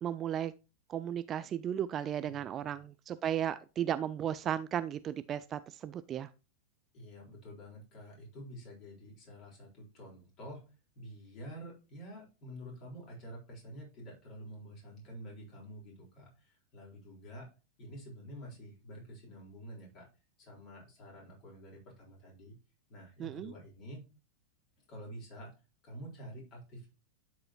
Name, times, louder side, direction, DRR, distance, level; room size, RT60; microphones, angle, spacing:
voice 1, 0.0-0.5 0.9-6.3 23.2-23.5, right 10 dB, 30° right, 0.3 m, -35 dB
voice 2, 2.2-2.8 6.9-10.6 10.9-17.5 17.8-20.1 20.4-22.5 22.9-24.0 24.9-25.6 25.8-26.9, equal, 35° left, 3.9 m, -49 dB
11.5 x 4.8 x 3.0 m
figure-of-eight pair, 90°, 0 cm